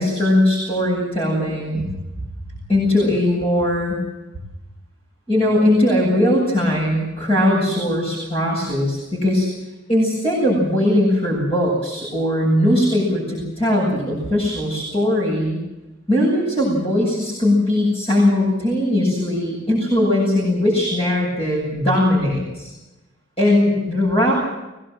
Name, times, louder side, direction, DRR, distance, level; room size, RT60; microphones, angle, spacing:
voice 1, 0.0-1.9 2.7-4.0 5.3-9.5 9.9-15.6 16.1-22.7 23.4-24.3, left 1 dB, 30° left, -4 dB, 7.5 m, -19 dB
23.0 x 18.0 x 7.8 m, 1.0 s
head